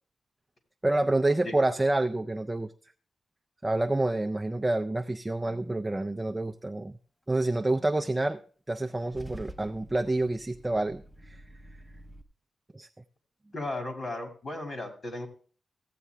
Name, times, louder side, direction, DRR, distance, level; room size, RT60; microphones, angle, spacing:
voice 1, 0.8-2.7 3.6-7.0 7.3-8.4 8.7-11.4 12.7-12.9, right 2 dB, 15° right, 5 dB, 0.4 m, -28 dB
Car / Engine starting / Idling, 8.7-12.2, equal, 10° left, 0.7 m, -48 dB
voice 2, 13.5-15.3, left 2 dB, 40° left, 5 dB, 2.1 m, -35 dB
15.0 x 8.4 x 3.3 m, 0.42 s
wide cardioid pair, 135°, 0 cm